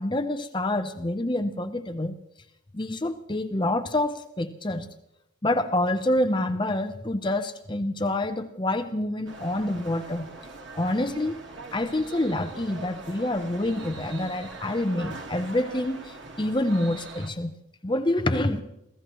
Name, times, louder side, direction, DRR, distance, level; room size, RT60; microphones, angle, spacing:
voice 1, 0.0-2.2 2.7-4.9 5.4-10.3 10.7-11.4 11.7-17.5 17.8-18.6, left 1 dB, 25° left, 7 dB, 0.7 m, -27 dB
sound 1, 9.2-17.3, right 3 dB, 70° right, 2.0 m, -42 dB
28.0 x 15.5 x 3.1 m, 0.84 s
head